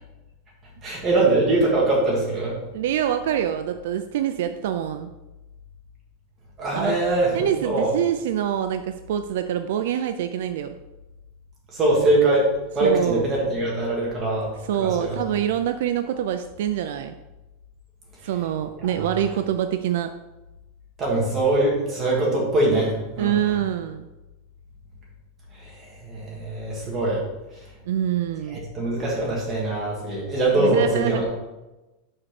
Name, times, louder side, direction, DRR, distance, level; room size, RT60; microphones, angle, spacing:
voice 1, 0.8-2.6 6.6-7.9 11.7-12.5 12.7-14.5 14.8-15.2 19.0-19.1 21.0-23.4 25.5-27.3 28.5-31.2, right 2 dB, 20° right, -4 dB, 2.2 m, -22 dB
voice 2, 2.7-5.1 6.7-7.0 7.3-10.7 12.8-13.3 14.6-17.1 18.2-20.1 23.2-24.1 27.9-28.6 30.6-31.2, right 10 dB, 65° right, 8 dB, 0.4 m, -25 dB
6.4 x 4.6 x 5.9 m, 1.0 s
supercardioid pair, 175°, 0 cm